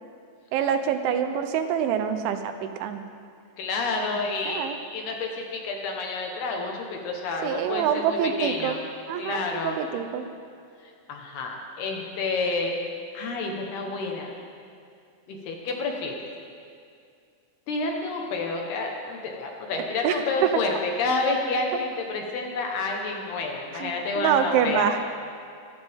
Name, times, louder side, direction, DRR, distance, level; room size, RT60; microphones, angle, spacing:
voice 1, 0.5-3.0 4.5-4.8 7.4-8.8 9.1-10.3 20.0-20.5 23.7-25.0, right 8 dB, 80° right, 8 dB, 3.2 m, -26 dB
voice 2, 3.6-8.8 9.2-9.8 10.8-12.8 13.1-14.3 15.3-16.2 17.7-24.9, left 3 dB, 65° left, 1 dB, 3.0 m, -29 dB
24.5 x 14.5 x 3.6 m, 2.3 s
omnidirectional pair, 5.5 m